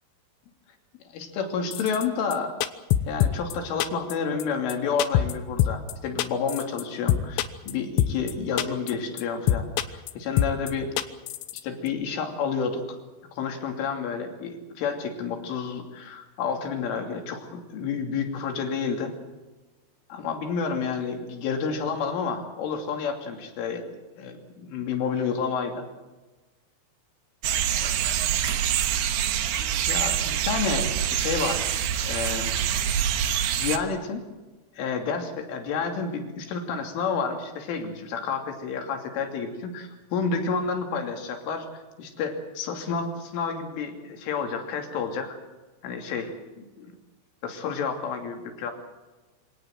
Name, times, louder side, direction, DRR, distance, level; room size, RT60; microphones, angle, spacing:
voice 1, 1.1-2.6 3.1-11.1 11.6-13.0 13.3-19.1 20.1-25.9 27.8-27.9 29.6-32.5 33.6-34.2 34.8-41.7 42.0-45.4 45.8-46.3 46.8-46.9 47.4-48.7, left 5 dB, 70° left, 4 dB, 5.2 m, -30 dB
sound 1, 1.7-2.1 2.3-2.4 2.6-3.6 3.8-4.1 4.4-4.5 4.7-4.8 5.0-5.3 5.6-5.9 6.2-6.8 7.1-7.7 8.0-8.3 8.6-8.9 9.2-9.3 9.5-10.1 10.4-10.7 11.0-11.6 11.9-12.0, left 12 dB, 90° left, 3.8 m, -23 dB
sound 2, 27.4-33.8, right 9 dB, 70° right, 2.8 m, -25 dB
25.5 x 18.0 x 7.8 m, 1.2 s
omnidirectional pair, 5.9 m